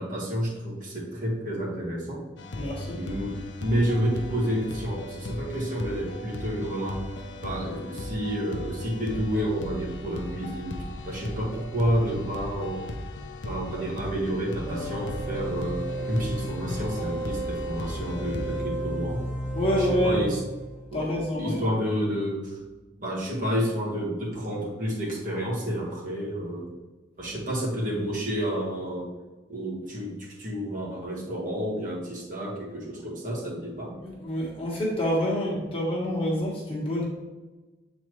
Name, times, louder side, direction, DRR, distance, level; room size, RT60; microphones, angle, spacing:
voice 1, 0.0-2.2 2.9-7.0 7.4-10.8 11.0-12.8 13.4-15.8 16.1-19.2 19.7-20.4 20.9-21.1 21.4-22.6 23.0-26.7 27.2-29.1 29.5-33.9, equal, 45° right, -4 dB, 1.5 m, -30 dB
sound 1, 2.4-18.6, left 1 dB, 70° left, 0.6 m, -37 dB
voice 2, 2.5-3.0 19.5-20.3 20.9-21.6 34.0-37.0, equal, 30° left, -4 dB, 1.5 m, -27 dB
sound 2, 14.6-20.8, right 1 dB, 10° right, 1.6 m, -33 dB
8.1 x 4.2 x 3.1 m, 1.2 s
head